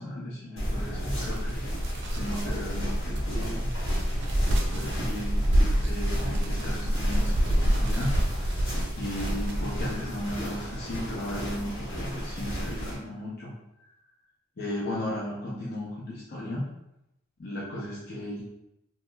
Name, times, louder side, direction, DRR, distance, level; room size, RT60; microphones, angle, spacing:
voice 1, 0.0-1.6 2.1-3.7 4.7-5.5 5.8-8.6 8.9-13.5 14.6-16.7 17.4-18.4, left 1 dB, 50° left, -6 dB, 0.6 m, -35 dB
sound 1, 0.6-12.9, equal, 70° left, 1.0 m, -33 dB
sound 2, 0.8-9.9, equal, 55° right, 0.5 m, -28 dB
2.9 x 2.8 x 2.2 m, 0.85 s
head